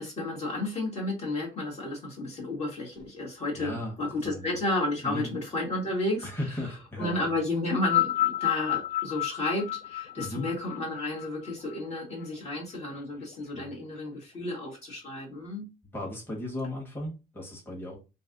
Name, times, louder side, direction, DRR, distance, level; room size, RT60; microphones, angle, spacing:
voice 1, 0.0-6.3 7.0-15.7, left 2 dB, 40° left, 1.4 m, -32 dB
voice 2, 3.5-3.9 4.2-4.6 5.0-5.3 6.2-7.4 10.2-10.5 13.5-13.7 15.9-18.0, left 1 dB, 10° left, 1.3 m, -36 dB
sound 1, 7.7-12.2 13.1-13.2, left 14 dB, 65° left, 0.4 m, -30 dB
3.2 x 2.7 x 2.5 m
cardioid pair, 110°, 17 cm